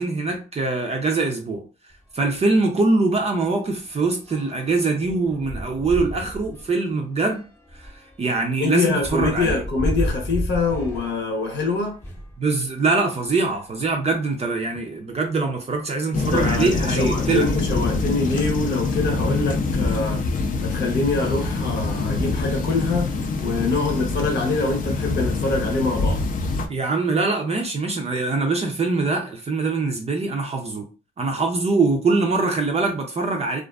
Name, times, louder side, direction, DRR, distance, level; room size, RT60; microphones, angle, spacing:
voice 1, 0.0-1.6 2.1-7.4 7.7-7.9 8.2-9.6 12.4-17.5 26.7-30.8 31.2-33.6, right 3 dB, 30° right, 0.5 m, -23 dB
sound 1, 1.9-2.1 2.4-2.6 2.9-12.4 13.1-14.4 15.1-15.2 15.5-15.6 17.3-17.4 18.0-18.3 18.7-19.9, equal, 10° left, 0.7 m, -34 dB
voice 2, 8.6-12.0 16.3-20.2 20.6-23.1 23.4-26.2, left 3 dB, 60° left, 0.8 m, -24 dB
sound 2, 16.1-26.7, left 3 dB, 40° left, 0.4 m, -25 dB
2.4 x 2.4 x 2.2 m
cardioid pair, 90°, 20 cm